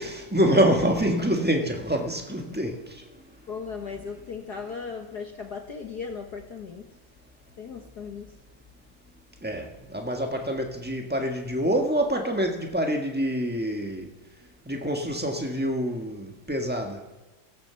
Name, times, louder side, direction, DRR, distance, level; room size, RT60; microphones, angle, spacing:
voice 1, 0.0-2.8 9.4-14.1 14.7-17.0, equal, 10° right, 3 dB, 0.6 m, -26 dB
voice 2, 3.5-6.9 7.5-8.4, left 5 dB, 60° left, 5 dB, 1.0 m, -37 dB
23.5 x 16.5 x 7.0 m, 1.1 s
omnidirectional pair, 3.4 m